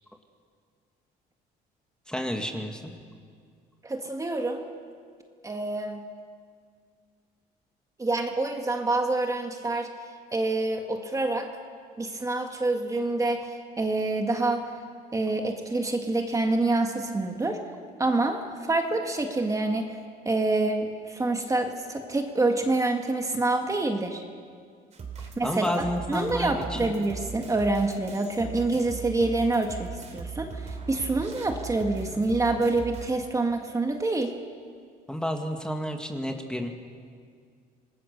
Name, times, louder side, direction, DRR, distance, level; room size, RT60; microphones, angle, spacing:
voice 1, 2.1-3.0 25.4-26.9 35.1-36.7, equal, 5° left, 4 dB, 1.9 m, -31 dB
voice 2, 3.8-4.6 5.4-6.0 8.0-9.9 10.3-11.5 12.0-14.7 15.1-17.6 18.0-20.0 20.3-24.2 25.2-34.3, right 2 dB, 20° right, 4 dB, 1.9 m, -27 dB
sound 1, 24.9-33.1, right 5 dB, 40° right, 3.4 m, -39 dB
26.5 x 19.0 x 6.8 m, 2.1 s
cardioid pair, 110°, 17 cm